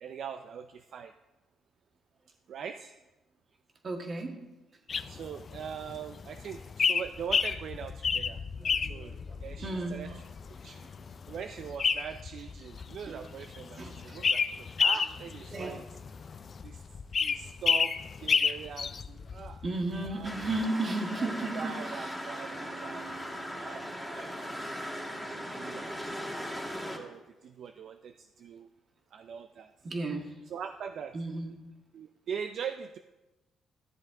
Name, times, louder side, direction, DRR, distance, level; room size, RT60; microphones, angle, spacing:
voice 1, 0.0-1.1 2.5-3.0 5.1-8.4 8.8-10.1 10.6-10.8 11.3-15.8 16.6-16.8 17.2-19.6 20.0-20.3 20.7-20.9 21.2-21.3 21.5-23.1 23.5-24.3 25.2-26.3 26.9-28.7 29.1-29.7 30.5-31.2 31.9-33.0, right 7 dB, 65° right, 8 dB, 0.4 m, -42 dB
voice 2, 3.8-4.4 8.6-10.2 10.6-11.1 13.1-13.2 13.8-14.2 15.5-15.9 19.6-22.1 29.8-30.3 31.1-31.6, right 2 dB, 40° right, 3 dB, 1.7 m, -35 dB
sound 1, 4.9-20.7, left 6 dB, 45° left, 0.4 m, -31 dB
sound 2, 20.2-27.0, equal, 5° right, 1.9 m, -38 dB
13.5 x 7.4 x 3.7 m, 1.1 s
cardioid pair, 90°, 0 cm